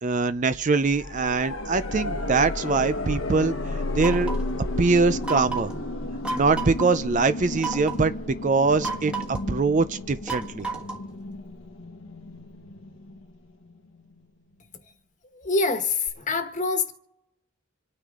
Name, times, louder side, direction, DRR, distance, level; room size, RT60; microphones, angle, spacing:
voice 1, 0.0-3.5 4.0-4.3 4.8-5.7 6.3-10.7, right 4 dB, 40° right, 0.5 m, -23 dB
sound 1, 0.8-13.7 16.1-16.2, left 2 dB, 85° left, 1.2 m, -33 dB
sound 2, 4.0-4.5 5.2-5.8 6.2-6.9 7.6-8.1 8.8-9.5 10.3-11.1, right 4 dB, 5° right, 1.5 m, -32 dB
voice 2, 15.3-16.9, left 3 dB, 40° left, 1.4 m, -25 dB
27.5 x 9.8 x 3.7 m
head